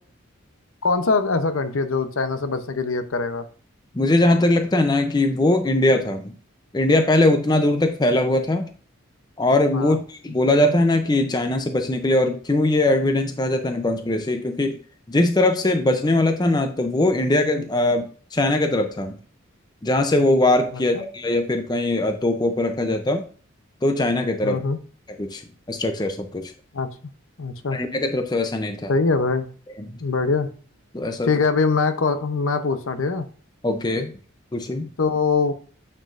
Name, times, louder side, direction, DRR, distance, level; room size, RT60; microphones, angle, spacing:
voice 1, 0.8-3.4 9.7-10.0 20.7-21.0 24.4-24.8 26.7-26.9 27.4-27.8 28.9-29.5 30.0-30.5 31.2-33.3 35.0-35.5, left 4 dB, 80° left, 10 dB, 0.7 m, -22 dB
voice 2, 3.9-6.3 6.7-8.7 9.4-14.8 15.1-19.2 19.8-23.2 23.8-24.6 25.2-25.4 25.7-26.5 27.7-28.9 29.8-30.0 30.9-31.3 33.6-34.1 34.5-34.9, left 2 dB, 20° left, 6 dB, 0.5 m, -21 dB
9.1 x 4.5 x 2.5 m, 0.41 s
head